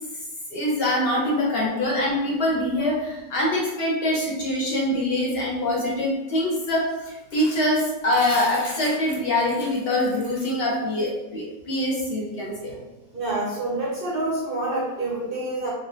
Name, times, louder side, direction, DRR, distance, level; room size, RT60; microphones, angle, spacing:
voice 1, 0.5-12.8, left 1 dB, 60° left, -3 dB, 0.6 m, -24 dB
voice 2, 13.1-15.7, right 2 dB, 65° right, -5 dB, 0.5 m, -27 dB
3.3 x 2.1 x 2.9 m, 1.1 s
omnidirectional pair, 1.5 m